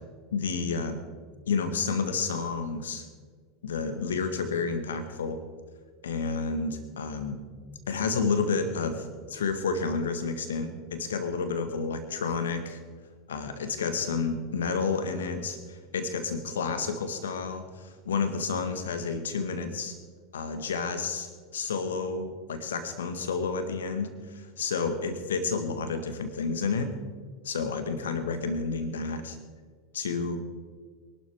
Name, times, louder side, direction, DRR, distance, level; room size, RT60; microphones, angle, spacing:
voice 1, 0.3-1.0 1.5-3.0 3.6-5.4 6.0-7.4 7.9-12.8 13.3-19.9 20.3-27.0 27.4-29.4 29.9-30.4, left 4 dB, 70° left, 8 dB, 1.7 m, -30 dB
23.0 x 12.0 x 3.7 m, 1.6 s
figure-of-eight pair, 80°, 0 cm